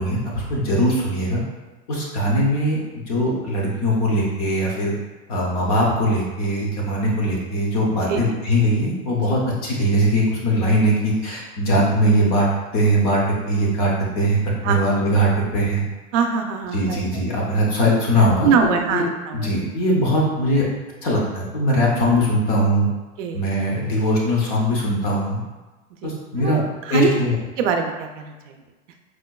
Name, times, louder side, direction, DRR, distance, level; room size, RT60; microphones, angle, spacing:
voice 1, 0.0-1.4 1.9-2.8 3.1-4.9 5.3-12.5 12.7-14.4 14.6-15.8 16.7-19.0 19.3-20.6 21.0-22.9 23.3-25.4 26.0-26.6 26.9-27.3, equal, 30° left, -3 dB, 0.5 m, -20 dB
voice 2, 16.1-17.0 17.3-17.4 18.2-19.5 23.2-23.4 26.0-26.1 26.4-27.1 27.6-28.5, right 6 dB, 70° right, 4 dB, 0.5 m, -23 dB
4.5 x 2.2 x 2.2 m, 1.2 s
supercardioid pair, 165°, 38 cm